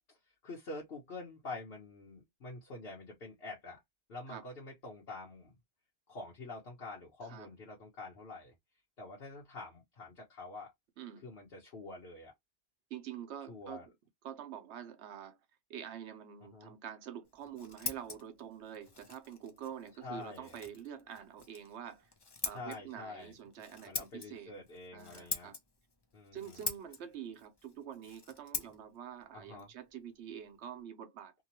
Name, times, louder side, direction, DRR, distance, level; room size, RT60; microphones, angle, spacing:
voice 1, 0.4-3.8 4.1-5.6 6.1-8.5 9.0-10.7 11.2-12.3 13.5-13.9 16.5-16.7 20.0-20.6 22.5-23.4 23.8-25.5 26.1-26.7 29.3-29.7, left 3 dB, 65° left, 1.2 m, -46 dB
voice 2, 12.9-13.8 14.2-15.4 15.7-22.1 22.4-24.5 24.9-25.6 26.3-31.3, right 9 dB, 85° right, 1.0 m, -46 dB
Scissors, 17.2-30.8, left 3 dB, 30° left, 0.5 m, -45 dB
2.9 x 2.3 x 2.8 m
omnidirectional pair, 1.1 m